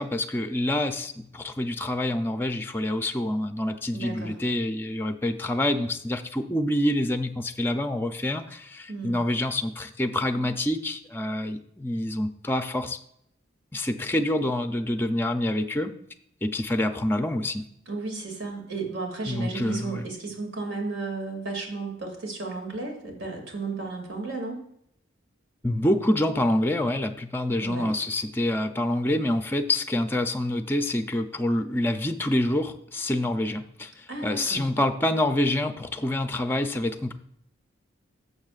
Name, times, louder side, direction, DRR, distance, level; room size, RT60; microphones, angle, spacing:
voice 1, 0.0-13.0 13.7-15.9 16.4-17.6 19.3-20.1 25.6-37.1, left 1 dB, 10° left, 7 dB, 0.4 m, -27 dB
voice 2, 3.9-4.3 8.9-9.2 17.9-24.6 27.6-27.9 34.1-34.7, right 3 dB, 75° right, 1 dB, 2.4 m, -34 dB
12.0 x 7.0 x 2.4 m, 0.72 s
head